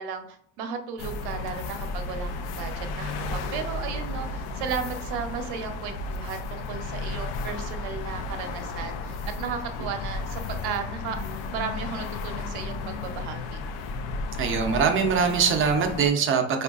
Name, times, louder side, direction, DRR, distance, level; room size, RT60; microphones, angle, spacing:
voice 1, 0.0-11.2 11.5-13.6, right 6 dB, 75° right, 6 dB, 0.7 m, -35 dB
sound 1, 1.0-16.1, left 3 dB, 70° left, 0.5 m, -33 dB
voice 2, 14.4-16.6, right 6 dB, 35° right, 5 dB, 0.5 m, -23 dB
4.4 x 2.4 x 2.3 m, 0.67 s
cardioid pair, 140°, 39 cm